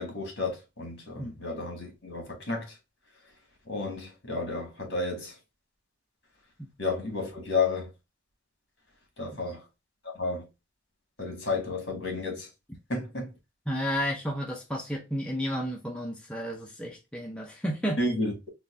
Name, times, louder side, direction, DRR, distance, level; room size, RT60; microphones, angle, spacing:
voice 1, 0.0-2.7 3.7-5.3 6.8-7.9 9.2-9.6 10.0-10.4 11.2-12.5 12.9-13.3 18.0-18.3, left 3 dB, 55° left, 1.9 m, -31 dB
voice 2, 13.7-18.0, equal, 5° left, 0.5 m, -32 dB
4.0 x 2.3 x 3.4 m
head